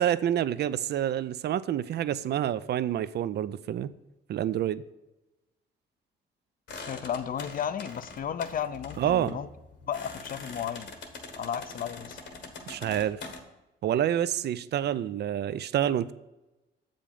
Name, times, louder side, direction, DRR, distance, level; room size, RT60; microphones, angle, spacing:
voice 1, 0.0-3.9 4.3-4.8 9.0-9.4 12.7-13.2 13.8-16.1, right 11 dB, 60° right, 16 dB, 0.4 m, -28 dB
sound 1, 6.7-13.4, left 4 dB, 65° left, 1.3 m, -43 dB
voice 2, 6.9-9.5 9.9-10.9 11.4-12.2, left 8 dB, 45° left, 14 dB, 0.5 m, -33 dB
7.5 x 5.1 x 5.3 m, 1.0 s
cardioid pair, 90°, 20 cm